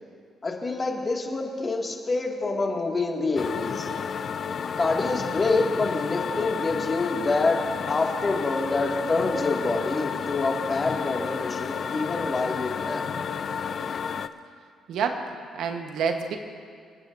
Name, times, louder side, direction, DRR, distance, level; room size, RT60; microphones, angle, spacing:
voice 1, 0.4-3.9 4.8-7.6 7.9-13.0, left 3 dB, 30° left, 0 dB, 2.2 m, -26 dB
sound 1, 3.4-14.3, left 6 dB, 55° left, 0.5 m, -31 dB
voice 2, 14.9-16.4, right 6 dB, 80° right, 5 dB, 1.2 m, -28 dB
29.0 x 10.0 x 2.7 m, 2.1 s
cardioid pair, 90°, 0 cm